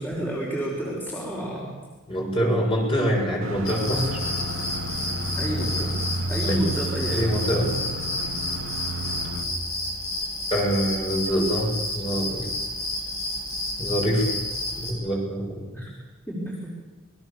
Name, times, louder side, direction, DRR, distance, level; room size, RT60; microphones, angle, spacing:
voice 1, 0.0-1.7 5.4-5.9 6.3-7.3 15.7-15.9 16.3-16.8, right 1 dB, 10° left, -5 dB, 5.1 m, -30 dB
voice 2, 2.1-4.2 6.5-6.6 7.1-7.7 10.5-12.5 13.8-14.3 14.8-15.6, equal, 25° left, -1 dB, 7.1 m, -25 dB
sound 1, 3.4-9.4, right 1 dB, 70° right, 2.2 m, -31 dB
sound 2, 3.6-14.9, left 1 dB, 80° left, 7.7 m, -31 dB
28.0 x 21.0 x 7.2 m, 1.2 s
head